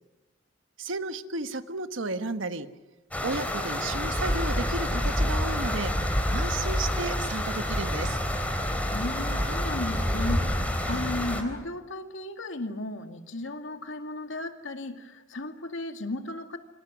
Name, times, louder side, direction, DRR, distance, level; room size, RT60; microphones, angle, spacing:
voice 1, 0.8-2.7 3.2-5.9 6.3-8.2 10.9-11.0, right 2 dB, 75° right, 10 dB, 1.4 m, -33 dB
sound 1, 3.1-11.4, equal, 10° left, 4.1 m, -28 dB
voice 2, 8.9-16.6, left 2 dB, 75° left, 6 dB, 2.3 m, -35 dB
28.5 x 26.0 x 6.3 m, 1.1 s
head